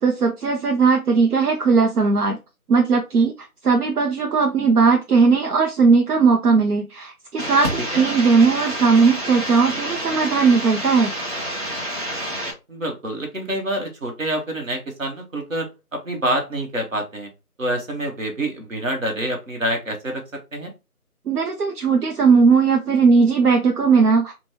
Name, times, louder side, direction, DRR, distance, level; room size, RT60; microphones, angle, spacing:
voice 1, 0.0-2.4 2.7-3.3 3.6-11.1 21.3-24.3, right 4 dB, 85° right, 2 dB, 0.6 m, -18 dB
sound 1, 7.4-12.5, equal, 35° right, 1.1 m, -28 dB
voice 2, 12.7-17.3 17.6-20.2 20.5-20.7, right 1 dB, 60° right, 2 dB, 1.0 m, -27 dB
2.9 x 2.2 x 3.0 m, 0.27 s
figure-of-eight pair, 165°, 45 cm